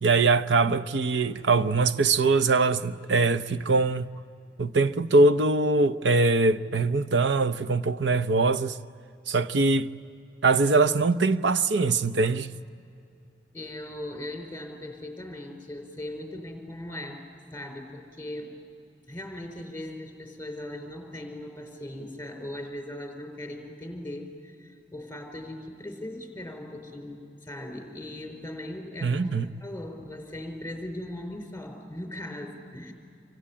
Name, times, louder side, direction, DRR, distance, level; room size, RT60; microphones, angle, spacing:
voice 1, 0.0-4.1 4.6-8.8 9.3-9.9 10.4-12.5 29.0-29.5, right 3 dB, 85° right, 0.7 m, -22 dB
voice 2, 13.5-17.2 17.5-18.6 19.1-29.2 29.6-32.9, left 1 dB, 10° left, 4.6 m, -39 dB
27.5 x 24.5 x 8.8 m
head